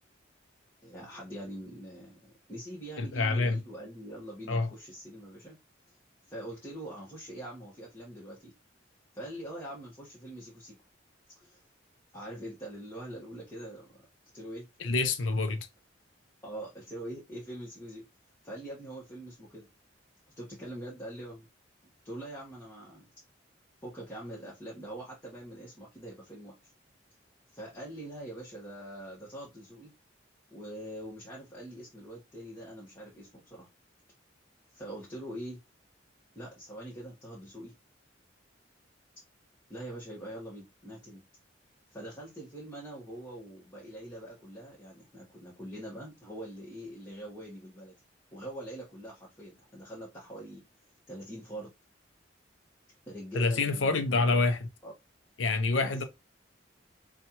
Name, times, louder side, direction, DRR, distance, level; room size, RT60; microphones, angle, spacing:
voice 1, 0.8-5.6 5.9-6.0 6.3-8.5 9.1-10.8 11.3-11.6 12.1-14.1 14.3-15.0 16.4-18.0 18.4-19.7 20.4-21.5 22.0-23.0 23.8-26.7 27.5-29.9 30.5-33.7 34.7-35.6 36.3-37.7 39.7-41.2 41.9-47.9 48.3-50.6 51.1-51.7 53.1-54.5 54.8-54.9 55.8-56.0, right 1 dB, 15° left, 1.2 m, -43 dB
voice 2, 3.0-3.6 4.5-4.7 14.8-15.7 53.3-54.6 55.4-56.0, left 3 dB, 85° left, 0.6 m, -27 dB
5.4 x 2.4 x 2.9 m
head